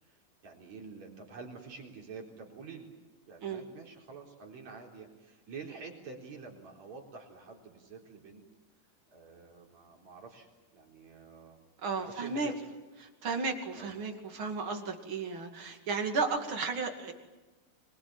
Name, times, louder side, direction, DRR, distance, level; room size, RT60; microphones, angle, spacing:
voice 1, 0.4-2.9 3.3-8.5 9.1-11.6 12.0-12.7 13.7-13.9, right 4 dB, 55° right, 1 dB, 5.2 m, -48 dB
voice 2, 11.8-12.5 13.0-17.1, right 4 dB, 40° right, 4 dB, 3.0 m, -34 dB
25.0 x 22.0 x 9.0 m, 1.2 s
omnidirectional pair, 3.8 m